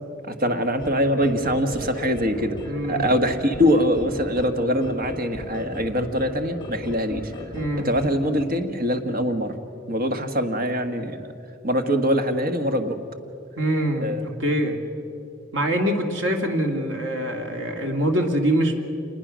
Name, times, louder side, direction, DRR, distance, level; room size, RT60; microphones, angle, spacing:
voice 1, 0.3-2.6 2.9-7.3 7.8-9.5 9.9-11.3 11.6-13.0 14.0-14.2, equal, 50° right, 6 dB, 1.5 m, -23 dB
sound 1, 0.8-8.4, left 1 dB, 25° left, 2.0 m, -36 dB
voice 2, 2.6-3.1 7.5-7.9 13.6-14.8 15.5-18.8, right 1 dB, 80° right, 3 dB, 2.4 m, -24 dB
26.5 x 20.5 x 6.3 m, 2.7 s
head